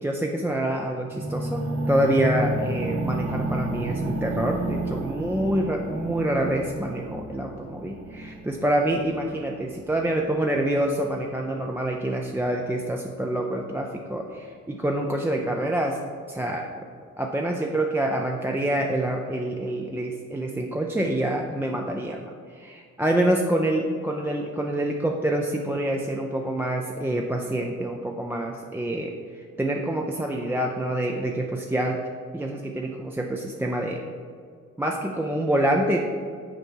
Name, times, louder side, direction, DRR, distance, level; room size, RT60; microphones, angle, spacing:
voice 1, 0.0-16.0 16.3-16.7 17.2-32.0 32.3-34.0 34.8-36.1, right 1 dB, 5° right, 1 dB, 0.4 m, -26 dB
sound 1, 1.1-11.1, right 1 dB, 50° right, 1.0 m, -31 dB
6.6 x 4.4 x 4.5 m, 2.2 s
cardioid pair, 90°, 30 cm